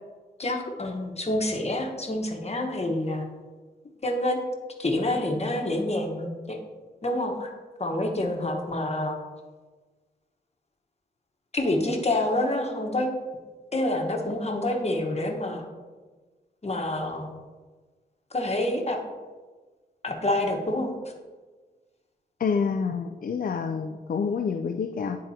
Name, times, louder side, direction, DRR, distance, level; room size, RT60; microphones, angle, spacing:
voice 1, 0.4-3.2 4.0-4.4 4.8-6.6 7.0-7.5 7.8-9.2 11.5-13.1 13.7-15.6 16.6-17.3 18.3-19.0 20.0-20.9, left 1 dB, 35° left, 2 dB, 1.2 m, -27 dB
voice 2, 22.4-25.2, left 5 dB, 55° left, 5 dB, 0.4 m, -28 dB
9.9 x 3.7 x 2.8 m, 1.4 s
cardioid pair, 50°, 18 cm